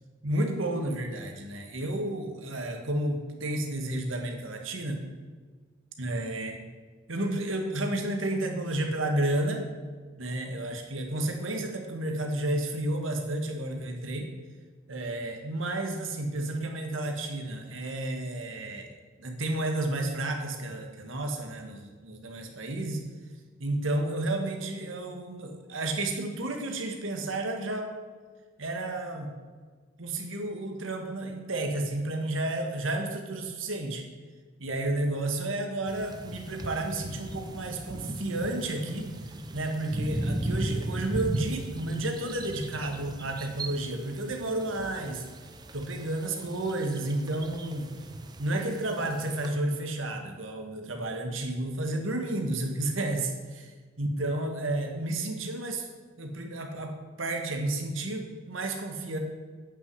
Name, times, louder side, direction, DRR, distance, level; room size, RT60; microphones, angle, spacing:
voice 1, 0.2-5.0 6.0-6.6 7.1-9.6 10.2-14.3 14.9-18.9 19.2-23.0 23.6-27.9 28.6-29.3 30.0-34.0 34.6-45.2 45.7-47.9 48.4-53.7 54.0-55.9 56.2-59.2, right 1 dB, 80° right, 3 dB, 1.7 m, -31 dB
sound 1, 35.9-49.5, right 1 dB, 20° right, 0.6 m, -37 dB
8.9 x 6.3 x 7.9 m, 1.5 s
head